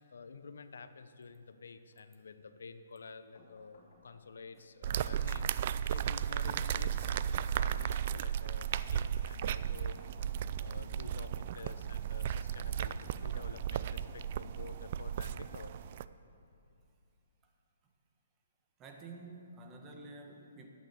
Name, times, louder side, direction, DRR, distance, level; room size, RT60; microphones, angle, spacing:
voice 1, 0.0-5.5 5.9-7.2 7.5-10.0 10.6-15.8, left 5 dB, 75° left, 11 dB, 0.7 m, -50 dB
sound 1, 3.3-4.6 6.6-7.9 9.7-10.9, left 2 dB, 60° left, 3.2 m, -62 dB
sound 2, 4.8-16.0, right 9 dB, 45° right, 0.4 m, -35 dB
voice 2, 18.8-20.7, right 3 dB, 20° right, 2 dB, 1.4 m, -50 dB
12.0 x 8.8 x 6.9 m, 2.4 s
hypercardioid pair, 150°, 0 cm